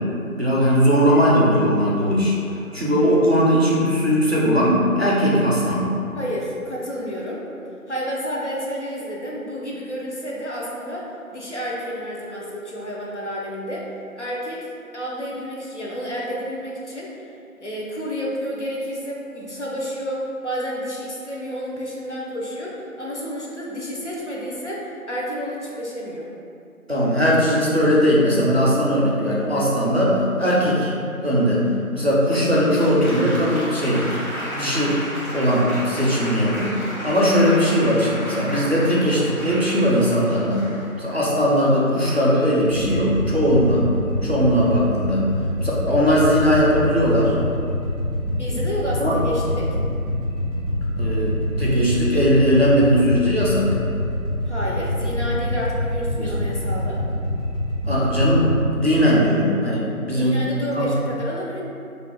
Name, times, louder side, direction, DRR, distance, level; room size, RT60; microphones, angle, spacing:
voice 1, 0.4-2.3 2.7-5.8 26.9-30.9 31.2-31.7 31.9-34.0 34.5-35.0 35.3-36.7 37.0-40.6 41.0-43.8 44.2-45.2 45.6-47.4 49.0-49.1 51.0-53.7 56.2-56.3 57.8-60.4 60.7-60.9, equal, 50° right, -6 dB, 0.4 m, -19 dB
voice 2, 6.1-7.4 7.9-13.9 14.2-17.2 17.6-26.3 48.4-49.8 54.5-57.0 60.1-61.6, equal, 55° left, -4 dB, 0.5 m, -30 dB
Applause, 32.3-41.2 42.0-42.4, equal, 75° left, 0.9 m, -33 dB
sound 1, 42.7-58.6, left 1 dB, 40° left, 0.9 m, -26 dB
2.4 x 2.0 x 3.3 m, 2.5 s
figure-of-eight pair, 175°, 43 cm